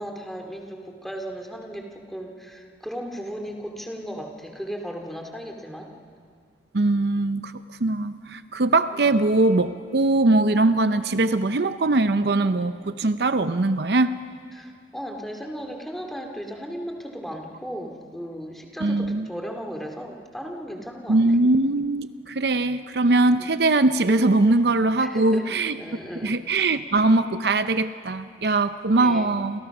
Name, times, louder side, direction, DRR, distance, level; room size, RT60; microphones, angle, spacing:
voice 1, 0.0-5.9 8.9-9.0 14.5-21.2 23.4-23.5 25.0-26.3 29.0-29.3, equal, ahead, 2 dB, 2.6 m, -36 dB
voice 2, 6.7-7.5 7.8-14.2 18.8-19.3 21.1-25.8 26.2-29.6, right 2 dB, 60° right, 11 dB, 0.7 m, -21 dB
29.0 x 28.0 x 6.1 m, 2.2 s
head